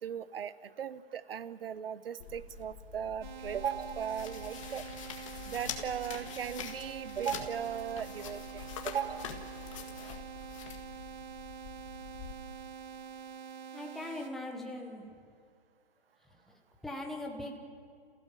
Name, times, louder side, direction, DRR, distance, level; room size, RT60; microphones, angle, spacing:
voice 1, 0.0-4.9 5.5-9.3, right 8 dB, 65° right, 16 dB, 1.0 m, -37 dB
sound 1, 2.2-12.3, left 7 dB, 30° left, 1.8 m, -45 dB
sound 2, 3.2-14.3, right 7 dB, 45° right, 2.0 m, -46 dB
voice 2, 13.7-15.1 16.3-17.6, left 1 dB, ahead, 0 dB, 0.8 m, -41 dB
29.5 x 15.5 x 7.3 m, 2.4 s
hypercardioid pair, 170°, 32 cm